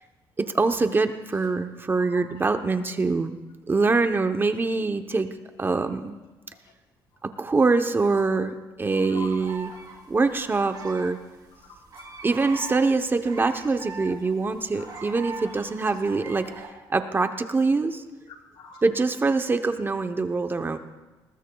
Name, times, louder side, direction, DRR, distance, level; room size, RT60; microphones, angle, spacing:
voice 1, 0.4-3.4 3.7-5.3 5.6-6.2 7.4-9.7 10.1-11.2 12.2-16.4 16.9-18.0 18.8-20.8, right 3 dB, 25° right, 8 dB, 0.8 m, -24 dB
voice 2, 1.9-2.6 3.8-3.9 6.5-6.7 8.9-9.3 9.7-9.9 11.5-12.1 14.7-15.1 18.3-18.8, left 5 dB, 80° left, 1 dB, 3.3 m, -46 dB
sound 1, 9.1-16.7, right 4 dB, 50° right, 3.5 m, -42 dB
20.5 x 20.0 x 2.3 m, 1.2 s
cardioid pair, 110°, 9 cm